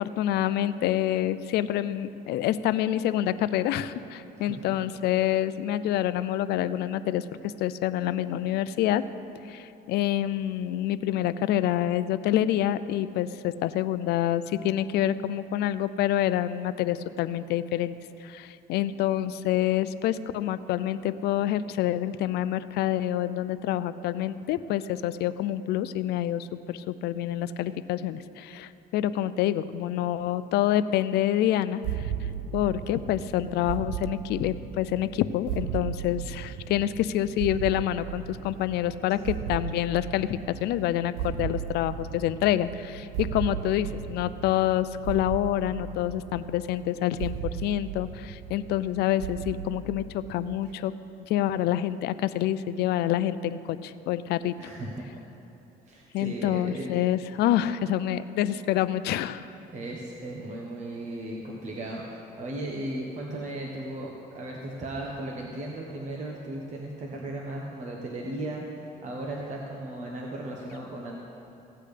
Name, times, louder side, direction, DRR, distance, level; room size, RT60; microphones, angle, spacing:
voice 1, 0.0-9.0 9.5-17.9 18.2-32.1 32.5-50.9 51.3-54.5 56.1-59.5, left 12 dB, 75° left, 14 dB, 0.4 m, -27 dB
voice 2, 4.4-4.8 33.0-33.1 54.6-55.3 55.9-56.9 59.7-71.2, right 1 dB, 45° right, -1 dB, 1.1 m, -36 dB
sound 1, 31.8-50.7, right 9 dB, 90° right, 0.4 m, -36 dB
16.0 x 8.5 x 3.3 m, 2.8 s
cardioid pair, 110°, 17 cm